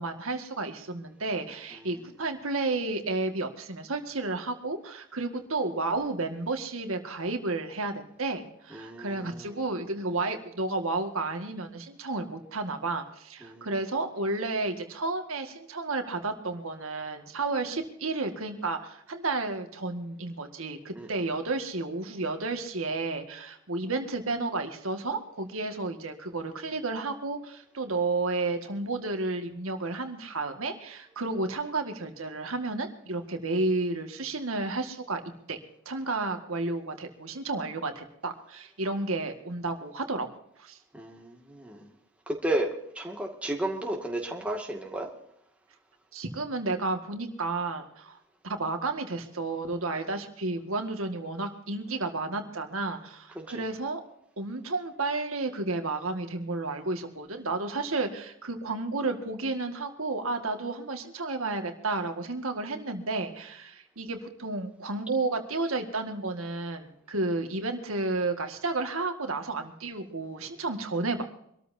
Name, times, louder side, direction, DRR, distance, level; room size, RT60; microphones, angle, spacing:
voice 1, 0.0-35.2 35.5-35.6 35.9-40.3 40.6-40.8 46.1-48.2 48.4-54.0 54.4-71.2, right 3 dB, 75° right, 5 dB, 1.9 m, -32 dB
voice 2, 8.7-9.6 13.4-13.7 20.9-21.1 40.9-41.9 42.3-45.1 53.4-53.7, right 1 dB, 5° right, 0 dB, 2.2 m, -33 dB
25.0 x 13.5 x 2.7 m, 0.73 s
head